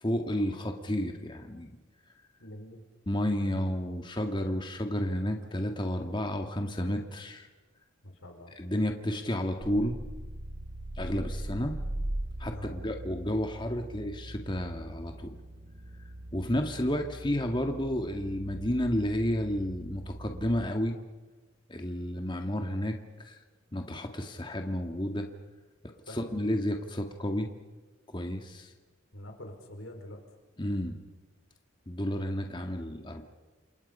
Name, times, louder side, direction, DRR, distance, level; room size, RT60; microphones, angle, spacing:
voice 1, 0.0-1.8 3.1-7.5 8.6-10.0 11.0-11.8 12.4-15.4 16.3-21.0 21.7-23.0 23.3-23.4 23.7-25.3 26.1-27.5 28.1-28.7 30.6-31.0 31.9-33.2, equal, 25° left, 4 dB, 1.8 m, -31 dB
voice 2, 2.4-2.8 8.0-8.5 12.5-12.8 26.1-26.3 29.1-30.2, left 1 dB, 90° left, 3 dB, 5.3 m, -45 dB
sound 1, 9.6-20.7, right 1 dB, 50° right, 2.9 m, -40 dB
29.0 x 27.0 x 5.6 m, 1.2 s
head